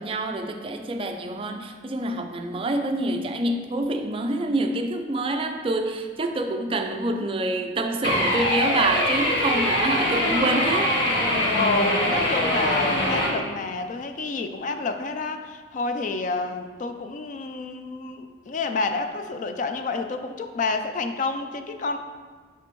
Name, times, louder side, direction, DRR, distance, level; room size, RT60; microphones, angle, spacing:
voice 1, 0.0-10.9, right 2 dB, 30° right, 6 dB, 0.4 m, -26 dB
sound 1, 8.0-13.3, left 1 dB, 75° left, 1.6 m, -23 dB
voice 2, 11.3-22.0, left 3 dB, 45° left, 7 dB, 0.4 m, -29 dB
10.0 x 3.4 x 3.1 m, 1.5 s
head